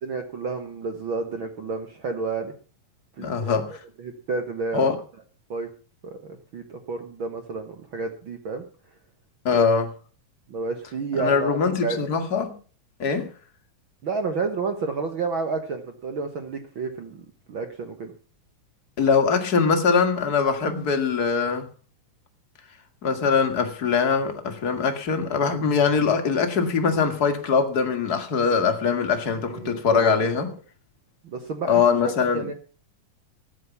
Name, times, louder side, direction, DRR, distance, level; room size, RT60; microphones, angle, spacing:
voice 1, 0.0-2.5 3.2-3.6 4.0-4.9 5.5-5.7 6.0-8.6 9.5-9.8 10.5-11.6 11.8-12.0 14.0-18.1 29.5-30.2 31.2-32.5, right 4 dB, 60° right, 1.4 m, -30 dB
voice 2, 3.2-3.8 4.7-5.0 9.4-9.9 11.1-12.5 13.0-13.3 19.0-21.7 23.0-30.5 31.6-32.4, left 5 dB, 40° left, 1.6 m, -22 dB
14.5 x 9.1 x 7.1 m
omnidirectional pair, 4.0 m